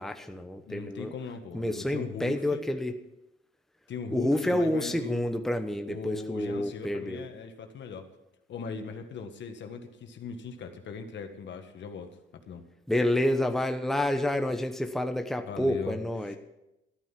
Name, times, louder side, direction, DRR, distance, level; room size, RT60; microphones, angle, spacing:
voice 1, 0.0-1.1 1.5-2.9 4.1-7.2 12.9-16.4, left 1 dB, ahead, 6 dB, 1.0 m, -29 dB
voice 2, 0.6-2.6 3.9-5.3 5.8-8.1 8.5-12.1 12.5-12.6 15.4-16.4, left 5 dB, 65° left, 6 dB, 1.7 m, -39 dB
13.5 x 9.3 x 5.9 m, 0.90 s
cardioid pair, 90°, 20 cm